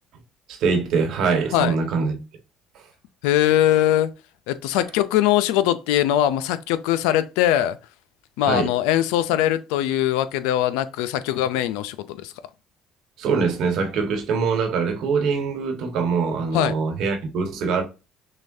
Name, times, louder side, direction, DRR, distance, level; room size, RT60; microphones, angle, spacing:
voice 1, 0.5-2.2 8.5-8.7 13.2-17.8, right 5 dB, 70° right, 1.2 m, -23 dB
voice 2, 3.2-4.1 4.5-7.8 8.4-12.3 16.5-16.7, left 12 dB, 85° left, 0.4 m, -21 dB
6.2 x 2.3 x 2.7 m
supercardioid pair, 90°, 0 cm